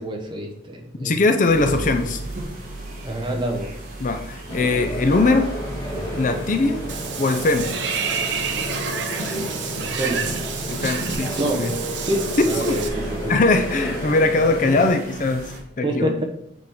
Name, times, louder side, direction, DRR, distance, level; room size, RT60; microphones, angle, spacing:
voice 1, 0.0-1.2 1.6-2.0 3.0-3.7 9.3-9.5 9.8-10.3 11.4-11.6 12.0-13.3 15.8-16.2, right 1 dB, 25° right, 1 dB, 1.0 m, -27 dB
voice 2, 1.0-2.2 4.0-5.5 6.2-6.8 7.2-7.7 10.7-11.7 12.6-12.8 13.3-16.1, left 3 dB, 40° left, 6 dB, 0.5 m, -21 dB
sound 1, 1.5-15.6, right 1 dB, 40° right, 1.9 m, -36 dB
sound 2, 4.5-14.9, equal, 20° left, 2.3 m, -32 dB
Water / Bathtub (filling or washing), 6.9-12.9, right 6 dB, 65° right, 0.8 m, -29 dB
8.2 x 5.0 x 3.7 m, 0.73 s
head